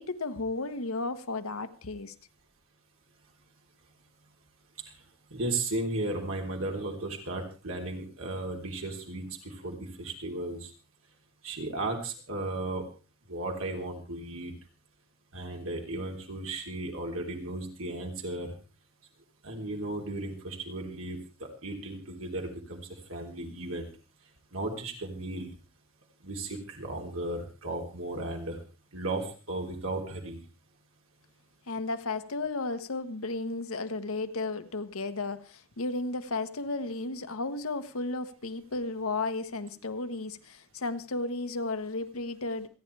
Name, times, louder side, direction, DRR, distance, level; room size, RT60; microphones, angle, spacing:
voice 1, 0.0-2.1 31.7-42.7, left 3 dB, 80° left, 1.2 m, -34 dB
voice 2, 5.3-10.7 11.4-12.9 13.3-14.5 15.3-18.5 19.4-21.2 21.6-23.9 24.5-25.5 26.2-28.6 28.9-30.4, right 2 dB, 75° right, 3.5 m, -35 dB
27.5 x 10.0 x 3.4 m
head